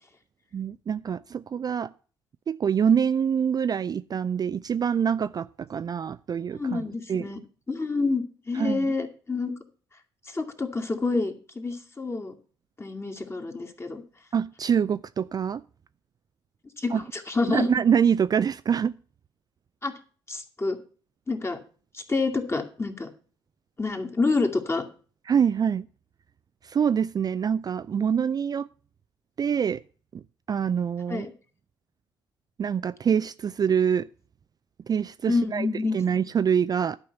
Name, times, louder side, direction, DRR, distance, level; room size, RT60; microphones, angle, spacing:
voice 1, 0.5-1.9 2.5-6.8 7.1-7.3 8.5-8.9 14.3-15.6 16.9-17.0 17.5-19.0 25.3-25.9 26.6-28.7 29.4-29.8 30.1-30.2 30.5-31.3 32.6-34.1 34.9-35.7 35.9-37.0, right 7 dB, 35° right, 14 dB, 0.4 m, -25 dB
voice 2, 6.5-7.4 7.7-9.5 10.3-12.3 12.8-14.0 16.8-17.7 19.8-19.9 20.3-20.8 21.3-21.6 21.9-23.1 23.8-24.8 31.1-31.3 35.3-36.0, left 3 dB, 20° left, 4 dB, 2.2 m, -28 dB
11.5 x 5.6 x 8.0 m, 0.40 s
hypercardioid pair, 50°, 11 cm